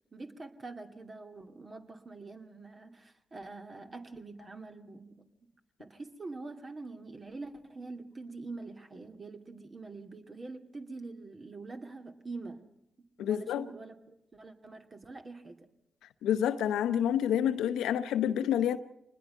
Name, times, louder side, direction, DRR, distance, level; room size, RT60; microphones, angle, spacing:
voice 1, 0.1-5.3 5.8-12.6 13.2-15.7, right 3 dB, 40° right, 2.5 m, -45 dB
voice 2, 13.2-13.7 16.2-18.8, left 10 dB, 80° left, 0.8 m, -28 dB
24.5 x 20.5 x 5.6 m
hypercardioid pair, 45°, 0 cm